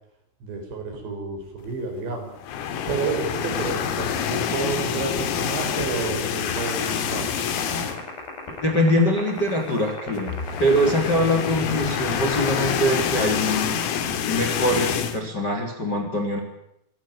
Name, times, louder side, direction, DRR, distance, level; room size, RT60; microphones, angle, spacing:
voice 1, 0.4-2.3 2.9-7.4, right 4 dB, 60° right, 4 dB, 7.3 m, -30 dB
sound 1, 2.4-8.2 8.6-8.7 9.0-9.1 10.2-15.2, left 8 dB, 90° left, 4.9 m, -27 dB
sound 2, 6.5-14.0, left 6 dB, 50° left, 9.8 m, -38 dB
voice 2, 8.6-13.7 14.2-16.4, equal, 25° left, 4 dB, 3.6 m, -23 dB
26.5 x 17.5 x 9.3 m, 0.78 s
omnidirectional pair, 5.9 m